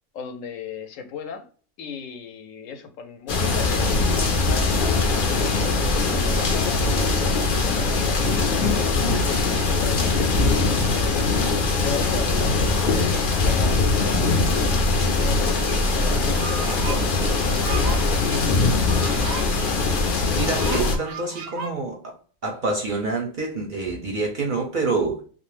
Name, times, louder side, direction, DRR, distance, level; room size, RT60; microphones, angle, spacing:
voice 1, 0.1-1.5 1.8-4.0 4.4-6.8 7.3-11.2 11.8-15.4 15.9-18.9, left 6 dB, 75° left, 0.9 m, -37 dB
sound 1, 3.3-21.0, left 3 dB, 55° left, 0.6 m, -21 dB
sound 2, 15.7-15.8 16.1-21.7, right 5 dB, 85° right, 1.0 m, -36 dB
voice 2, 20.3-22.2 22.4-25.2, right 3 dB, 50° right, 0.6 m, -27 dB
2.4 x 2.1 x 3.0 m
omnidirectional pair, 1.4 m